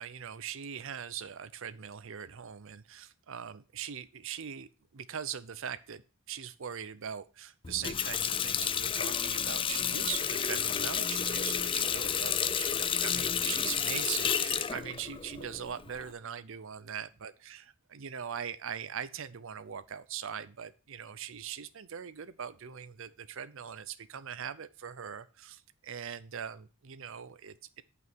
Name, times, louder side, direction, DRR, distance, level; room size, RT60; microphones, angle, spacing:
voice 1, 0.0-6.0 6.3-27.8, right 8 dB, 65° right, 14 dB, 0.6 m, -41 dB
Water tap faucet, 7.6-16.1, left 8 dB, 25° left, 0.4 m, -31 dB
9.4 x 5.7 x 6.1 m, 0.33 s
head